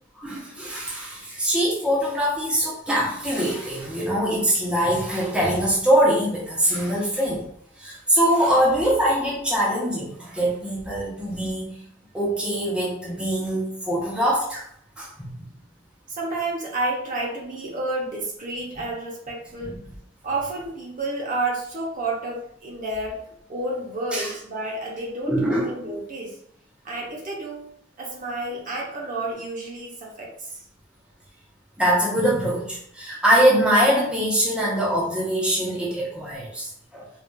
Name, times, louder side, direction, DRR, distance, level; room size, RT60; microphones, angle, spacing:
voice 1, 0.1-7.4 7.8-11.8 12.1-14.6 15.0-15.5 19.6-19.8 24.1-24.3 25.3-25.7 31.8-37.1, equal, 5° right, -6 dB, 0.7 m, -23 dB
voice 2, 16.1-19.8 20.2-23.2 23.5-26.4 26.8-27.7 28.0-30.6, right 2 dB, 40° right, -2 dB, 0.8 m, -30 dB
3.9 x 2.4 x 2.3 m, 0.68 s
head